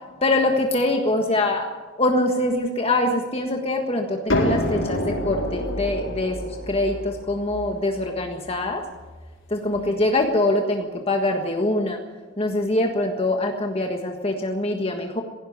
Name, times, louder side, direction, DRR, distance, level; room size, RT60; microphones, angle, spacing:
voice 1, 0.2-1.7 2.0-8.8 9.5-12.0 12.4-15.2, left 2 dB, 30° left, 3 dB, 1.5 m, -23 dB
sound 1, 4.3-9.9, left 1 dB, 70° left, 4.0 m, -28 dB
17.5 x 16.0 x 9.5 m, 1.3 s
head